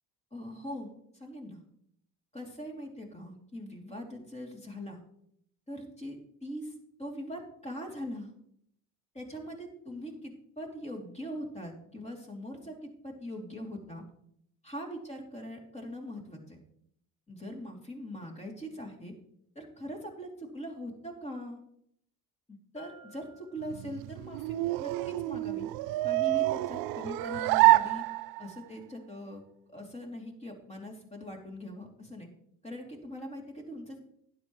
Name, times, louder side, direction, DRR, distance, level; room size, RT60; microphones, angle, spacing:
voice 1, 0.3-1.6 2.3-5.0 5.7-6.7 7.0-8.3 9.1-14.0 14.6-16.6 17.3-19.1 19.5-21.6 22.5-25.7 26.0-28.0 28.4-29.4 29.7-32.3 32.6-34.0, equal, 15° left, 1 dB, 2.9 m, -41 dB
Bell, 22.8-24.3, equal, 60° left, 2.6 m, -54 dB
sound 1, 23.6-28.6, right 20 dB, 70° right, 0.5 m, -27 dB
12.0 x 10.5 x 3.1 m, 0.69 s
cardioid pair, 105°, 38 cm